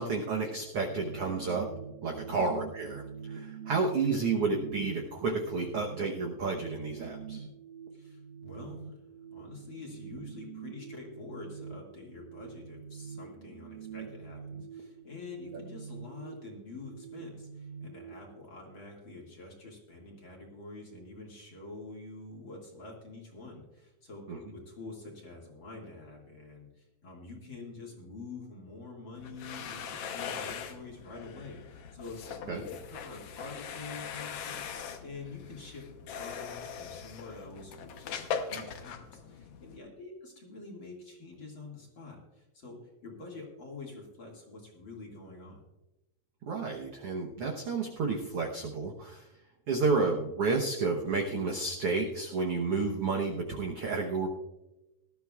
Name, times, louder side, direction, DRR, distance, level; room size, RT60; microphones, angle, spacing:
voice 1, 0.0-1.7 2.0-7.4 24.3-24.4 32.5-32.6 46.5-49.3 49.7-54.3, right 4 dB, 70° right, 0 dB, 1.4 m, -31 dB
sound 1, 0.8-18.1, right 6 dB, 85° right, 2.9 m, -45 dB
voice 2, 7.9-9.0 9.3-35.9 36.2-45.6, left 3 dB, 40° left, -1 dB, 2.4 m, -47 dB
sound 2, 29.1-39.8, left 7 dB, 75° left, 1.4 m, -41 dB
19.0 x 13.0 x 2.4 m, 0.99 s
omnidirectional pair, 4.1 m